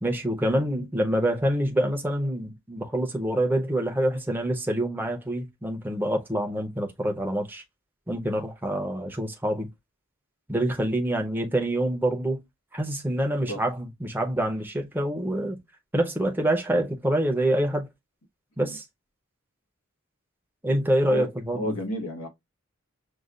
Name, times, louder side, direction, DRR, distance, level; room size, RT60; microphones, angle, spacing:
voice 1, 0.0-7.6 8.1-9.7 10.5-12.4 12.7-15.6 15.9-17.9 18.6-18.8 20.6-21.8, right 1 dB, 10° right, 0.6 m, -26 dB
voice 2, 21.1-22.3, left 1 dB, 90° left, 1.1 m, -32 dB
6.4 x 2.3 x 2.4 m
head